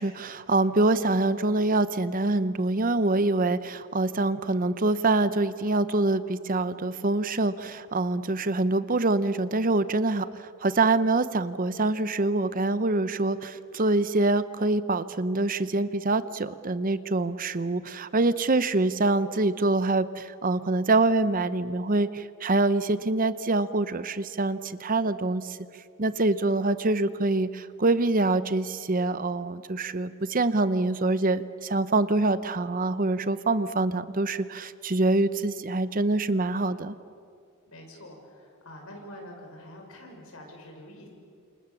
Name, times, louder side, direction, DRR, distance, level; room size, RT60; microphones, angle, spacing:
voice 1, 0.0-25.6 26.0-36.9, right 2 dB, 40° right, 13 dB, 0.8 m, -25 dB
voice 2, 37.7-41.1, left 1 dB, 75° left, 1 dB, 6.6 m, -46 dB
29.5 x 27.5 x 7.2 m, 2.4 s
head